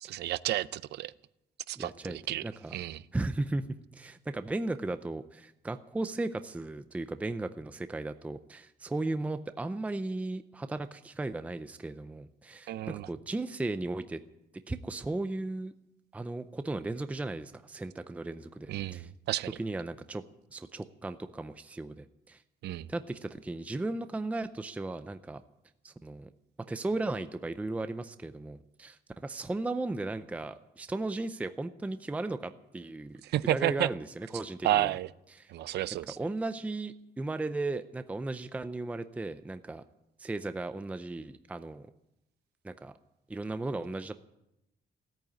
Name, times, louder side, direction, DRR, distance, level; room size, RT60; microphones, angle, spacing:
voice 1, 0.0-1.1 1.7-2.4 2.7-3.0 12.7-13.1 18.7-19.6 22.6-22.9 33.2-33.9 34.6-35.1 35.5-36.2, right 14 dB, 80° right, 17 dB, 0.6 m, -31 dB
voice 2, 1.8-2.2 2.4-2.7 3.1-14.2 14.7-15.7 16.1-19.1 19.6-20.2 20.5-22.4 22.9-25.4 25.8-26.3 26.7-33.2 33.5-34.9 35.3-35.5 36.2-39.8 40.2-41.9 42.6-42.9 43.3-44.2, right 2 dB, 10° right, 10 dB, 0.5 m, -36 dB
16.5 x 9.0 x 9.4 m, 0.87 s
cardioid pair, 150°, 17 cm